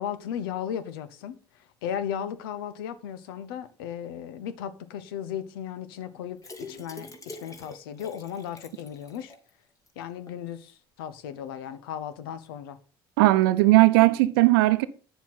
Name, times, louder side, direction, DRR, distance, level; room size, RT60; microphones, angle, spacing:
voice 1, 0.0-1.4 1.8-9.3 10.0-12.8, left 9 dB, 75° left, 0.9 m, -35 dB
sound 1, 6.4-9.5 9.9-10.0 10.3-10.4, left 3 dB, 30° left, 2.1 m, -45 dB
voice 2, 13.2-14.9, right 18 dB, 75° right, 0.7 m, -18 dB
9.2 x 7.3 x 4.1 m
hypercardioid pair, 65°, 12 cm